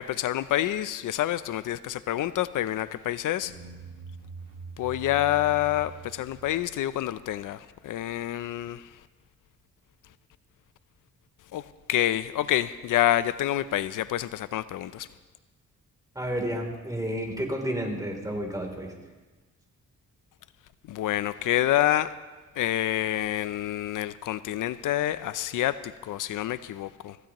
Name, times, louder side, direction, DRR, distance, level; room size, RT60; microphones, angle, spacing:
voice 1, 0.0-3.6 4.8-9.0 11.5-15.1 20.9-22.1 22.6-27.2, left 13 dB, 75° left, 0.5 m, -27 dB
sound 1, 3.4-7.7, right 3 dB, 90° right, 1.6 m, -44 dB
voice 2, 16.1-18.9, equal, 10° right, 3.2 m, -31 dB
24.0 x 15.5 x 3.0 m
cardioid pair, 100°, 32 cm